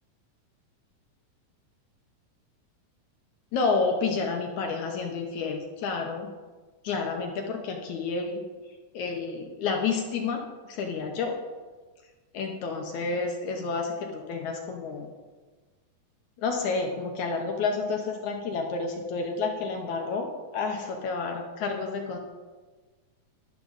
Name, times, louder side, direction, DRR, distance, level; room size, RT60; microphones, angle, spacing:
voice 1, 3.5-6.3 6.8-8.4 8.9-11.4 12.3-15.1 16.4-22.2, left 4 dB, 70° left, 2 dB, 2.2 m, -30 dB
12.0 x 12.0 x 4.1 m, 1.3 s
omnidirectional pair, 3.8 m